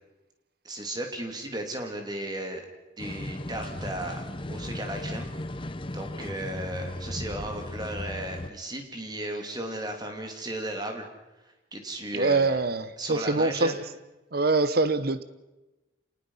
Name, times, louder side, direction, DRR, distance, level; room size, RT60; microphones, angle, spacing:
voice 1, 0.6-2.7 3.0-11.1 11.4-12.6 13.0-13.8, right 1 dB, 20° right, 4 dB, 2.9 m, -35 dB
sound 1, 3.0-8.5, left 1 dB, 30° left, 0.8 m, -36 dB
voice 2, 12.1-13.8 14.3-15.2, right 3 dB, 55° right, 13 dB, 1.0 m, -24 dB
27.0 x 19.5 x 5.7 m, 1.1 s
head